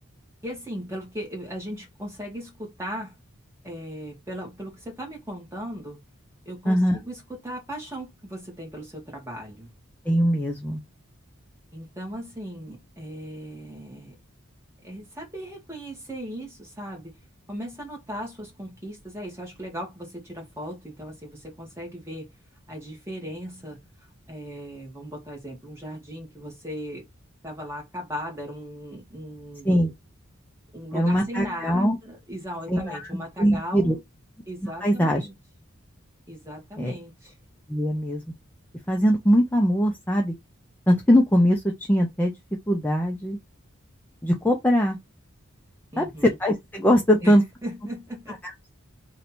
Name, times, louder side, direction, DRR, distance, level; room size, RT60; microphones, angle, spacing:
voice 1, 0.4-3.2 3.6-6.0 6.4-9.7 11.7-14.2 14.8-17.2 17.5-22.3 22.7-27.1 27.4-29.8 30.7-34.0 34.4-35.3 36.3-37.3 45.9-46.4 47.2-48.4, equal, 15° right, 1.6 m, -37 dB
voice 2, 6.7-7.0 10.1-10.8 29.7-29.9 30.9-32.0 32.7-33.1 33.4-33.9 34.6-35.3 36.8-36.9 37.7-38.2 38.9-40.3 40.9-41.6 41.9-42.3 42.7-43.4 44.2-45.0 46.0-46.1 46.4-47.4, equal, 10° left, 0.5 m, -21 dB
3.2 x 2.7 x 4.3 m
head